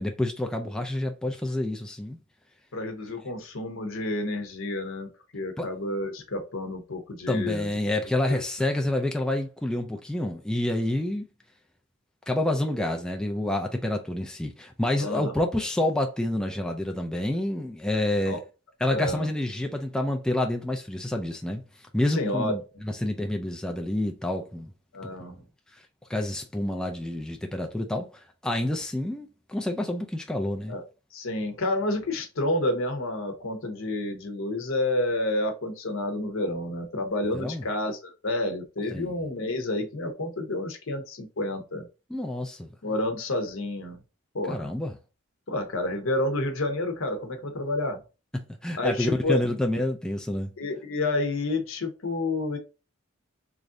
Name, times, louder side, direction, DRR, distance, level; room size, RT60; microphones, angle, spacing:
voice 1, 0.0-2.2 5.6-5.7 7.3-11.3 12.3-18.4 18.8-21.6 21.9-24.7 25.3-25.4 26.1-30.8 37.3-37.6 38.9-39.1 42.1-42.7 44.5-45.0 48.3-50.5, left 1 dB, 5° left, 0.3 m, -28 dB
voice 2, 2.7-5.1 5.3-7.7 8.3-8.4 15.0-15.3 18.3-18.4 18.9-19.3 22.1-22.5 24.9-25.4 30.7-30.8 31.1-41.8 42.8-44.0 44.3-44.7 45.5-48.0 48.8-49.4 50.6-52.6, left 2 dB, 70° left, 0.8 m, -29 dB
3.2 x 2.5 x 3.6 m
head